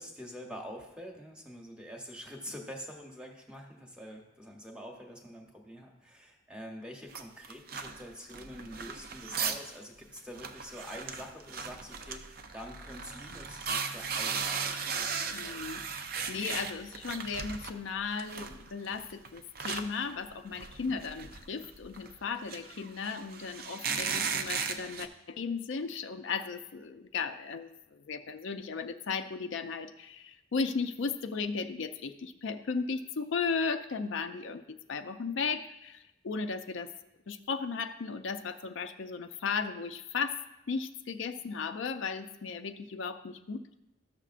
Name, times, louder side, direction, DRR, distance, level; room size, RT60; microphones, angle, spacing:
voice 1, 0.0-15.6, equal, 5° right, 1 dB, 1.0 m, -46 dB
sound 1, 7.1-9.7 10.0-10.1 10.3-17.8 18.1-25.1, right 6 dB, 50° right, 0.5 m, -37 dB
voice 2, 15.3-36.9 37.3-40.4 40.7-43.8, left 5 dB, 70° left, 8 dB, 0.5 m, -36 dB
13.5 x 6.7 x 2.5 m, 0.91 s
head